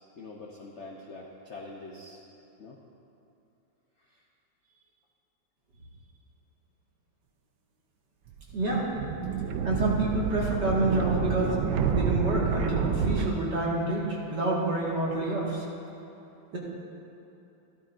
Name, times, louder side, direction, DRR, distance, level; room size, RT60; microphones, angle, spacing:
voice 1, 0.0-2.2 2.6-2.8 4.0-4.2 4.7-4.8, left 2 dB, 55° left, -2 dB, 0.7 m, -45 dB
sound 1, 8.3-13.3, right 6 dB, 80° right, 1.3 m, -29 dB
voice 2, 8.5-8.9 9.6-11.6 11.9-15.7, right 2 dB, 60° right, -5 dB, 2.4 m, -28 dB
14.0 x 12.5 x 2.6 m, 2.9 s
omnidirectional pair, 2.2 m